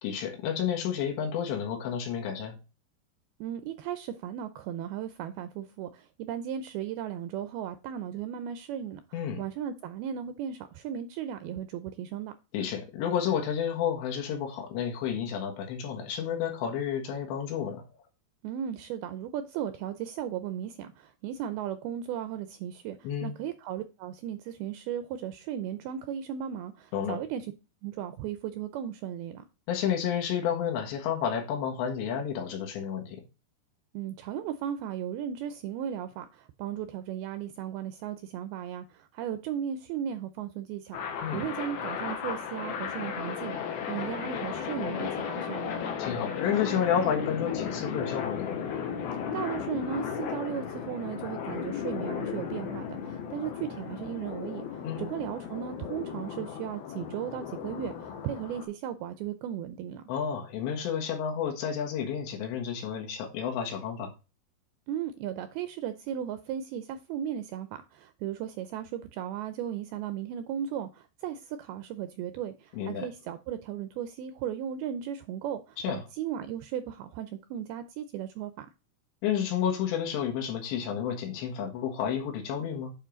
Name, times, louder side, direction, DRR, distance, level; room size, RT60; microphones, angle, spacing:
voice 1, 0.0-2.6 9.1-9.4 12.5-17.9 23.0-23.4 26.9-27.2 29.7-33.2 41.2-41.4 46.0-48.5 54.8-55.1 60.1-64.1 72.7-73.1 75.8-76.0 79.2-82.9, left 8 dB, 85° left, 3.8 m, -31 dB
voice 2, 3.4-12.3 18.4-27.5 27.8-29.4 33.9-45.7 49.3-60.0 64.9-78.7, right 9 dB, 85° right, 2.3 m, -36 dB
sound 1, 40.9-58.7, left 7 dB, 70° left, 3.1 m, -35 dB
9.2 x 4.5 x 3.8 m
omnidirectional pair, 4.9 m